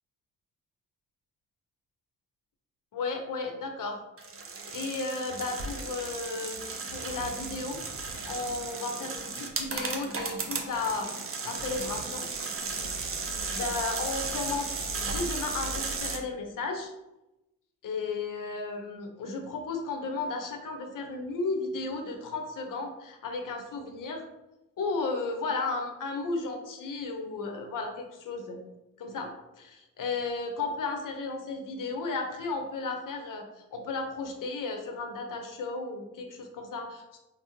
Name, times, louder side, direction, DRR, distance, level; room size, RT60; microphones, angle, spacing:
voice 1, 2.9-4.0 4.7-6.6 6.9-7.8 8.3-11.1 11.4-12.2 13.5-14.7 15.0-16.9 17.8-24.2 24.8-28.6 29.0-33.4 33.7-37.2, left 3 dB, 55° left, 4 dB, 0.7 m, -34 dB
sound 1, 4.2-16.2, right 4 dB, 35° right, 0.6 m, -35 dB
3.4 x 2.0 x 2.7 m, 0.95 s
hypercardioid pair, 45°, 38 cm